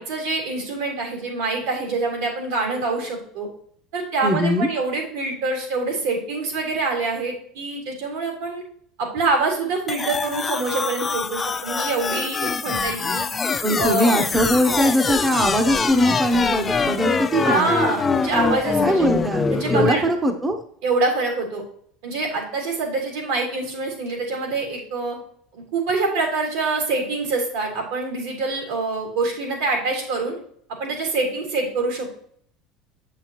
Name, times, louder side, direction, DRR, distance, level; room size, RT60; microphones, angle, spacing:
voice 1, 0.0-3.5 3.9-8.6 9.0-13.3 13.8-14.1 17.4-19.0 19.5-20.1 20.8-21.6 22.0-25.2 25.5-30.4 30.8-32.1, right 3 dB, 85° right, 0 dB, 3.5 m, -25 dB
voice 2, 4.2-4.7 13.6-17.7 18.8-20.6, equal, 15° right, 5 dB, 0.7 m, -21 dB
sound 1, 9.9-19.9, left 4 dB, 20° left, 0.5 m, -24 dB
7.8 x 7.5 x 3.0 m, 0.62 s
supercardioid pair, 130°, 0 cm